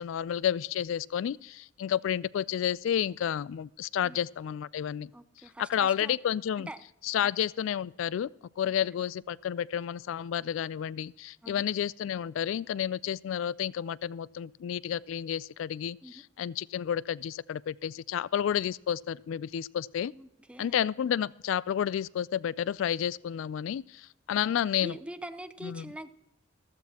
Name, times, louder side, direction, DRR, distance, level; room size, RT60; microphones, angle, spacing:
voice 1, 0.0-5.1 5.6-6.7 7.0-8.3 8.6-20.1 20.6-24.9 25.6-25.8, left 9 dB, 75° left, 0.3 m, -31 dB
voice 2, 5.1-6.2 6.6-6.8 7.2-7.3 8.6-8.9 11.4-11.6 16.0-16.2 20.1-20.8 24.3-24.4 24.8-26.1, right 1 dB, 5° right, 0.6 m, -44 dB
15.0 x 14.0 x 2.9 m
head